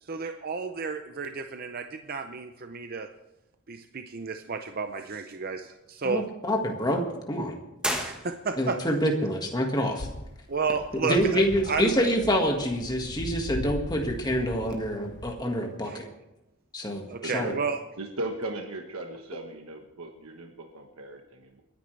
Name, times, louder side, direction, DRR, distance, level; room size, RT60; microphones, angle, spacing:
voice 1, 0.0-3.1 3.7-6.3 8.0-8.8 10.5-11.9 15.8-16.0 17.1-17.8, right 5 dB, 45° right, 7 dB, 0.6 m, -32 dB
voice 2, 6.0-7.0 7.3-7.6 8.6-10.1 11.0-16.1 16.7-17.5, equal, 20° left, 2 dB, 1.8 m, -26 dB
sound 1, 7.8-8.8, equal, 5° right, 1.3 m, -32 dB
sound 2, 10.0-15.4, left 2 dB, 50° left, 0.8 m, -40 dB
voice 3, 17.2-17.6 18.0-21.6, right 2 dB, 80° right, 3 dB, 1.3 m, -37 dB
29.5 x 10.0 x 3.3 m, 0.94 s
head